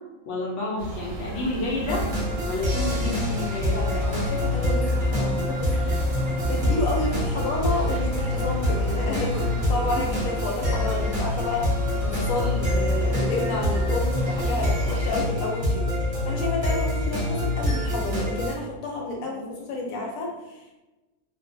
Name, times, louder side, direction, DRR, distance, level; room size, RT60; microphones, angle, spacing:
voice 1, 0.3-2.0 2.5-3.8 9.9-10.0 19.2-19.5, left 2 dB, 70° left, -3 dB, 0.9 m, -30 dB
sound 1, 0.8-15.3, right 2 dB, 90° right, 1.0 m, -35 dB
sound 2, 1.9-18.5, left 1 dB, 35° right, 0.7 m, -25 dB
voice 2, 3.7-5.7 6.5-11.7 12.0-15.9 16.2-20.8, left 2 dB, 90° left, -1 dB, 1.1 m, -30 dB
2.3 x 2.1 x 2.5 m, 1.1 s
omnidirectional pair, 1.4 m